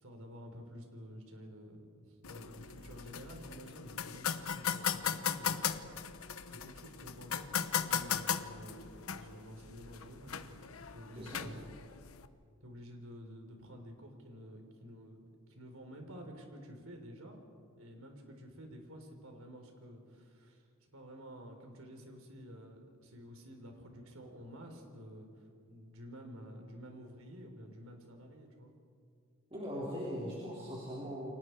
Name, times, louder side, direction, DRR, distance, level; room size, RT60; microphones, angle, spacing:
voice 1, 0.0-12.0 12.6-15.2 15.5-17.4 17.8-28.7, equal, 85° right, 3 dB, 4.1 m, -51 dB
sound 1, 2.2-12.3, left 8 dB, 90° left, 1.0 m, -38 dB
voice 2, 11.1-11.5 29.5-31.3, equal, 30° right, -5 dB, 4.1 m, -40 dB
30.0 x 25.0 x 4.8 m, 2.3 s
head